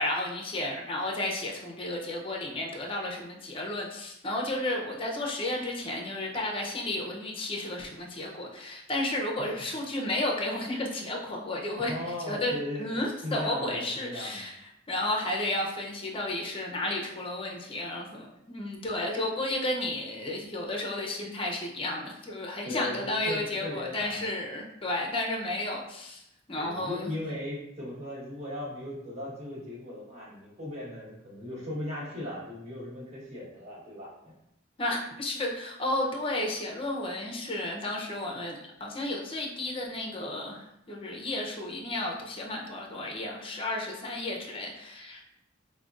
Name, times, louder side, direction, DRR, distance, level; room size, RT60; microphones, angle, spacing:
voice 1, 0.0-11.9 12.3-14.5 14.9-26.2 26.5-27.1 34.8-45.2, left 1 dB, 30° left, 0 dB, 0.6 m, -32 dB
voice 2, 11.8-12.9 13.2-14.5 22.6-24.2 26.6-34.1, left 1 dB, 35° right, -7 dB, 1.3 m, -37 dB
4.9 x 2.1 x 2.4 m, 0.82 s
head